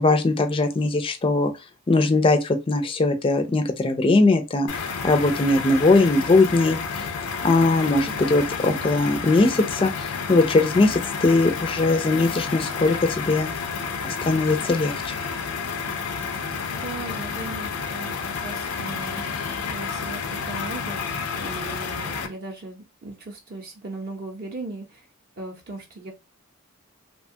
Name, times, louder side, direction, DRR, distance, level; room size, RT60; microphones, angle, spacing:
voice 1, 0.0-1.5 1.9-7.1 7.4-13.5 14.0-15.2, left 2 dB, 25° left, 0.4 m, -20 dB
sound 1, 4.7-22.3, left 5 dB, 90° left, 0.5 m, -30 dB
voice 2, 8.0-8.3 16.7-18.1 18.4-21.0 21.3-25.1 25.4-26.1, right 2 dB, 45° right, 0.6 m, -38 dB
2.8 x 2.2 x 2.6 m
head